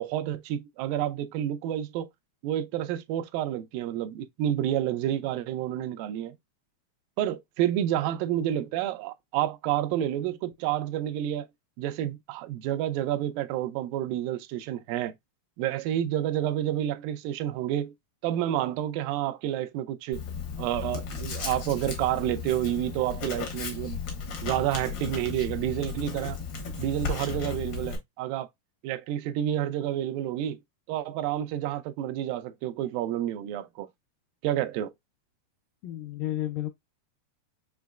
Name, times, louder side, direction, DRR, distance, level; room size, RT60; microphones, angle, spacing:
voice 1, 0.0-2.1 2.4-6.4 7.2-11.5 11.8-15.1 15.6-17.9 18.2-20.2 20.6-24.0 24.4-26.4 26.8-28.5 28.8-30.6 30.9-33.9 34.4-34.9, right 12 dB, 85° right, 2.3 m, -29 dB
Writing, 20.1-28.0, left 5 dB, 65° left, 1.1 m, -35 dB
voice 2, 35.8-36.7, left 14 dB, 80° left, 2.0 m, -32 dB
6.1 x 2.9 x 2.2 m
omnidirectional pair, 4.0 m